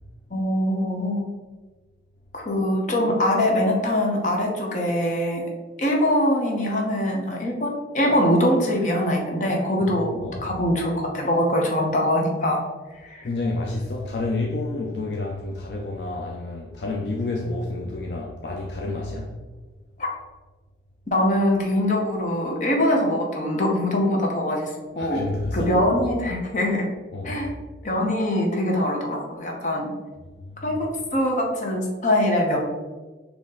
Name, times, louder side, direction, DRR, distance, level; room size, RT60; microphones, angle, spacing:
voice 1, 0.3-1.2 2.3-5.4 5.8-12.6 13.0-13.3 20.0-20.1 21.1-24.7 24.9-25.3 25.5-26.8 27.2-27.5 27.8-29.9 30.6-32.6, left 1 dB, 40° left, 0.8 m, -23 dB
voice 2, 9.8-10.6 13.2-19.4 25.0-25.7 27.1-27.4 30.4-30.7, left 2 dB, 65° left, 0.4 m, -30 dB
4.1 x 2.9 x 3.7 m
head